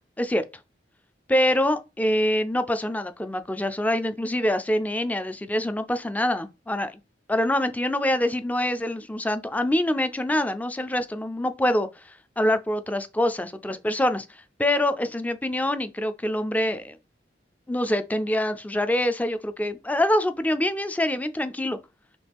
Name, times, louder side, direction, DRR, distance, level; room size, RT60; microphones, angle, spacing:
voice 1, 1.3-7.0 7.3-11.9 12.4-14.3 14.6-17.0 17.7-21.8, left 1 dB, 10° left, 0.4 m, -25 dB
5.9 x 2.4 x 3.5 m
head